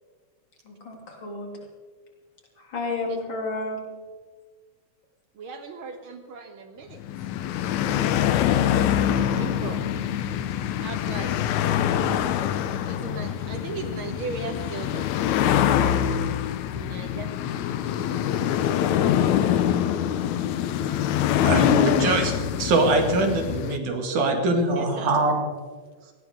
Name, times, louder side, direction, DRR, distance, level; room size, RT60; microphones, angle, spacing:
voice 1, 0.7-1.5 2.6-3.8, left 2 dB, 40° left, 0 dB, 3.6 m, -33 dB
voice 2, 5.4-7.0 9.4-9.8 10.8-11.3 12.9-15.1 16.6-17.3 19.7-19.8 24.7-25.1, right 4 dB, 60° right, 7 dB, 1.4 m, -37 dB
sound 1, 7.0-23.8, left 10 dB, 80° left, 2.1 m, -24 dB
voice 3, 21.4-22.3 22.6-25.5, right 2 dB, 85° right, 4 dB, 3.5 m, -23 dB
18.0 x 17.5 x 3.8 m, 1.5 s
omnidirectional pair, 3.4 m